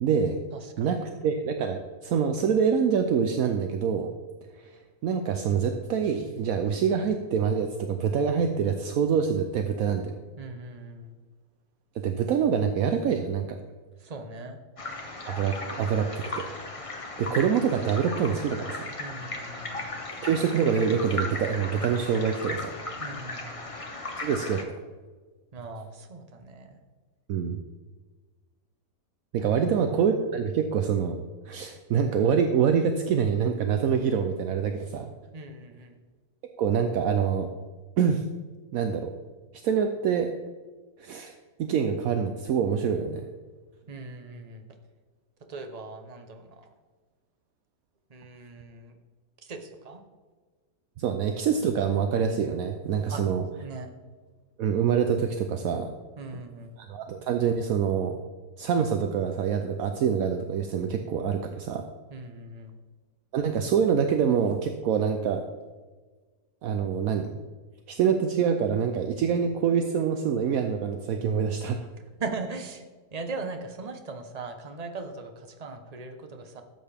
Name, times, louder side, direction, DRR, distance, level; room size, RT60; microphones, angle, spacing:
voice 1, 0.0-0.4 0.8-4.1 4.5-10.2 12.0-13.6 15.3-16.4 17.2-18.9 20.2-22.7 24.2-24.6 27.3-27.6 29.3-31.2 31.5-35.1 36.6-37.5 38.0-38.2 38.7-39.1 39.6-40.3 41.0-43.3 51.0-53.4 54.6-55.9 56.9-58.2 58.6-61.8 63.3-65.5 66.6-67.4 67.9-71.8, right 7 dB, 70° right, 6 dB, 1.0 m, -25 dB
voice 2, 0.5-1.1 10.4-11.1 14.0-14.6 19.0-19.9 23.0-23.7 25.5-26.8 29.6-29.8 35.3-36.0 43.9-44.7 45.5-46.7 48.1-48.9 49.4-50.0 53.1-53.2 53.6-53.9 56.2-56.7 62.1-62.7 72.2-72.8 73.1-76.6, right 3 dB, 30° right, 6 dB, 0.8 m, -39 dB
sound 1, 14.8-24.6, left 2 dB, 25° left, 0.9 m, -36 dB
12.5 x 7.9 x 3.4 m, 1.4 s
omnidirectional pair, 1.6 m